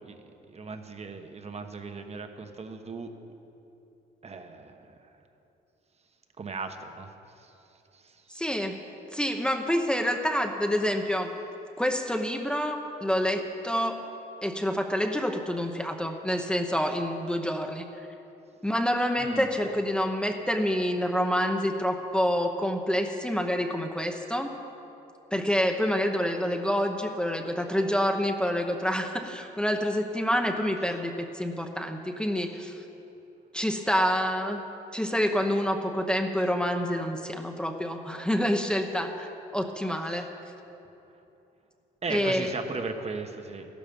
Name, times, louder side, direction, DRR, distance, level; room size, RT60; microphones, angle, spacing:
voice 1, 0.0-3.1 4.2-5.1 6.4-7.5 7.9-8.4 19.2-19.5 40.0-40.3 42.0-43.7, right 4 dB, 35° right, 6 dB, 1.2 m, -38 dB
voice 2, 8.3-8.8 9.1-11.3 11.8-14.1 14.4-17.8 18.6-24.5 25.3-32.7 33.5-34.6 34.9-40.3 42.1-42.5, equal, 5° left, 3 dB, 0.9 m, -27 dB
13.5 x 12.5 x 5.4 m, 2.9 s
cardioid pair, 80°, 18 cm